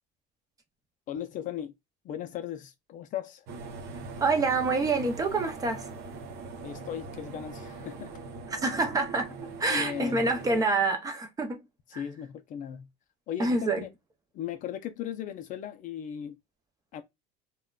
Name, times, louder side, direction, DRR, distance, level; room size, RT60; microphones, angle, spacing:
voice 1, 1.1-1.7 2.0-3.5 6.6-8.1 9.7-10.3 11.9-12.9 13.3-13.9 14.3-16.4 16.9-17.0, left 10 dB, 40° left, 0.4 m, -37 dB
sound 1, 3.5-10.6, right 4 dB, 55° right, 0.7 m, -41 dB
voice 2, 4.2-5.9 8.5-11.6 11.9-12.0 13.4-13.9, right 3 dB, 15° right, 0.5 m, -27 dB
3.6 x 2.2 x 2.2 m
cardioid pair, 145°, 21 cm